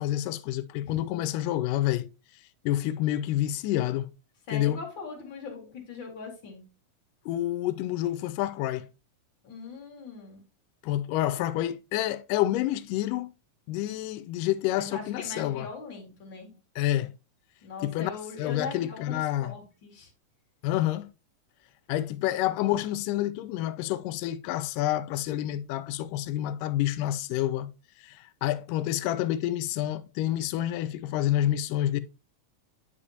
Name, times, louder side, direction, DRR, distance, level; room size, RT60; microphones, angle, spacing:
voice 1, 0.0-2.1 2.6-4.1 4.5-4.8 7.3-8.9 10.8-13.3 13.7-15.7 16.8-17.1 17.8-18.1 18.4-19.5 20.6-21.1 21.9-27.7 28.0-32.0, left 13 dB, 90° left, 2.2 m, -28 dB
voice 2, 4.5-6.6 9.4-10.4 14.8-16.5 17.6-20.1, left 4 dB, 40° left, 2.3 m, -40 dB
9.9 x 4.9 x 2.8 m
omnidirectional pair, 3.7 m